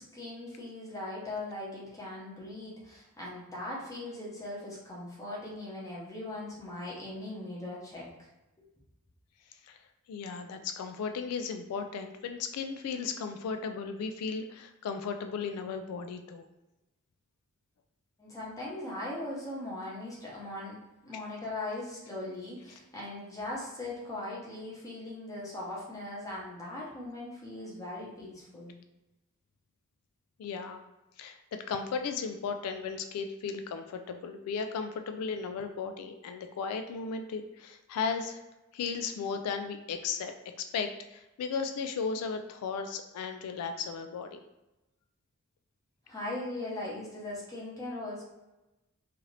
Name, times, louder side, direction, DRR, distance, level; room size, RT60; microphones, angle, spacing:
voice 1, 0.0-8.3 18.2-20.8 21.0-28.7 46.1-48.2, left 1 dB, 15° left, -6 dB, 0.8 m, -39 dB
voice 2, 10.1-16.5 30.4-30.8 31.2-31.4 31.7-38.4 38.7-44.4, left 5 dB, 85° left, 10 dB, 0.3 m, -35 dB
2.7 x 2.5 x 3.1 m, 1.0 s
head